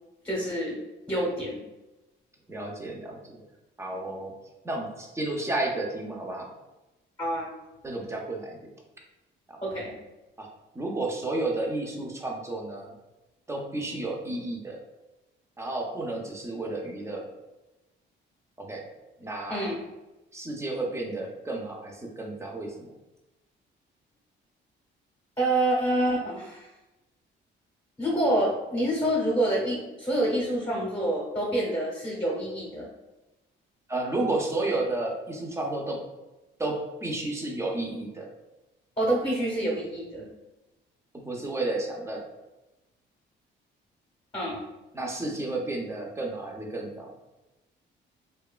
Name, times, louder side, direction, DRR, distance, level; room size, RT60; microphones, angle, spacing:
voice 1, 0.2-0.8 1.1-1.6 7.2-7.5 9.6-9.9 19.5-19.8 25.4-26.7 28.0-32.9 39.0-40.3 44.3-44.6, right 1 dB, 20° left, -4 dB, 0.9 m, -27 dB
voice 2, 2.5-3.4 3.8-4.3 4.6-6.5 7.8-8.6 9.5-9.6 10.4-10.5 10.7-12.9 13.5-14.8 15.6-17.3 18.6-18.8 19.2-19.7 20.3-22.9 33.9-36.0 36.6-36.8 37.0-38.3 41.1-42.2 44.9-47.1, right 2 dB, 15° right, 0 dB, 0.6 m, -32 dB
2.7 x 2.3 x 2.3 m, 1.0 s
cardioid pair, 90°, 20 cm